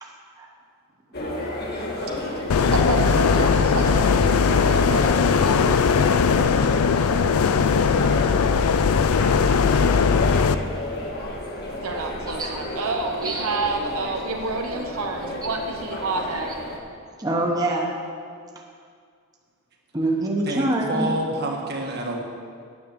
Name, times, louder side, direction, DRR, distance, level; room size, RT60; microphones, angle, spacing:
sound 1, 1.1-16.8, left 1 dB, 45° left, 1.5 m, -32 dB
sound 2, 2.5-10.5, left 5 dB, 80° left, 0.4 m, -19 dB
voice 1, 2.7-8.5 11.8-16.5, right 3 dB, 75° right, 2 dB, 0.9 m, -30 dB
voice 2, 17.2-17.9 19.9-21.1, right 1 dB, 15° right, -1 dB, 1.0 m, -25 dB
voice 3, 20.5-22.2, right 1 dB, 50° right, 0 dB, 1.5 m, -28 dB
9.9 x 6.8 x 7.2 m, 2.2 s
head